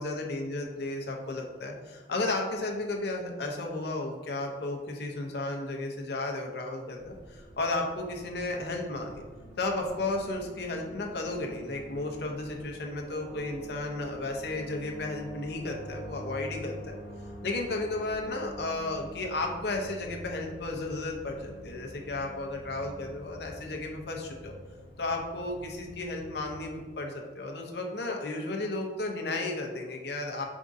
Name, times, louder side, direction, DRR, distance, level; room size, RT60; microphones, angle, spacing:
voice 1, 0.0-9.2 9.6-17.0 17.4-24.5 25.0-30.5, left 2 dB, 60° left, 1 dB, 0.7 m, -33 dB
sound 1, 7.0-26.9, equal, 85° left, 1.2 m, -46 dB
5.0 x 3.6 x 2.6 m, 1.5 s
head